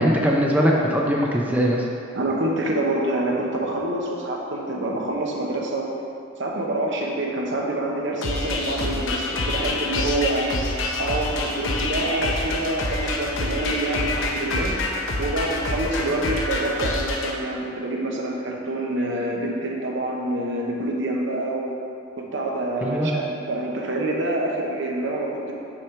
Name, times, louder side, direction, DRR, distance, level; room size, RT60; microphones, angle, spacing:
voice 1, 0.0-1.9 22.8-23.1, equal, 10° right, -2 dB, 0.6 m, -21 dB
voice 2, 2.1-5.9 6.4-10.6 11.0-14.8 15.2-21.8 22.2-25.5, right 1 dB, 65° right, -1 dB, 1.0 m, -26 dB
sound 1, 8.2-17.3, left 2 dB, 80° left, 0.8 m, -27 dB
6.3 x 4.7 x 5.7 m, 2.5 s
head